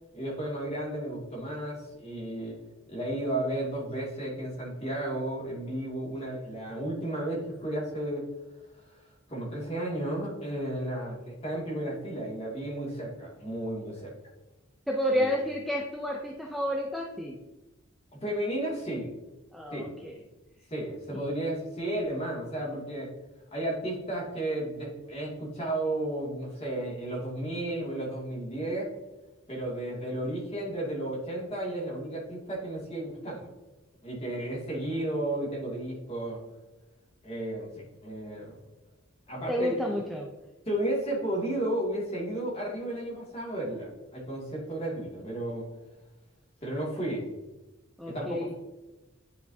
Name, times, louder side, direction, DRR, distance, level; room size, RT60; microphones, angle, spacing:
voice 1, 0.1-2.6 2.9-8.3 8.9-9.0 9.3-14.1 15.1-15.4 18.1-19.1 19.7-20.0 20.7-23.1 23.5-28.9 29.5-33.5 34.0-36.4 37.2-38.6 39.3-39.8 40.7-45.7 46.6-47.3 48.0-48.6, right 1 dB, 30° left, -5 dB, 2.3 m, -33 dB
voice 2, 14.9-17.4 19.5-20.2 39.5-40.3 48.0-48.5, equal, ahead, -2 dB, 0.5 m, -30 dB
9.9 x 4.7 x 2.7 m, 1.1 s
head